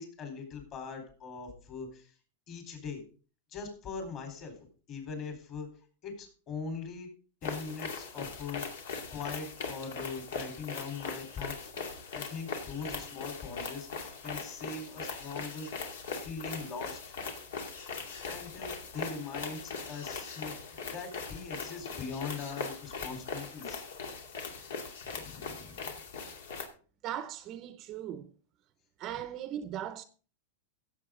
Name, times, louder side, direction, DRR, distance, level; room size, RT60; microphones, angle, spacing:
voice 1, 0.0-2.1 2.5-3.0 3.5-5.7 6.0-7.1 7.4-11.8 12.1-15.7 16.2-17.3 18.3-23.8 25.1-25.9, left 5 dB, 35° left, 4.0 m, -41 dB
sound 1, 7.4-26.7, left 5 dB, 75° left, 2.4 m, -40 dB
voice 2, 27.0-28.3 29.0-30.0, right 11 dB, 35° right, 0.7 m, -38 dB
16.0 x 7.4 x 3.8 m
supercardioid pair, 145°, 0 cm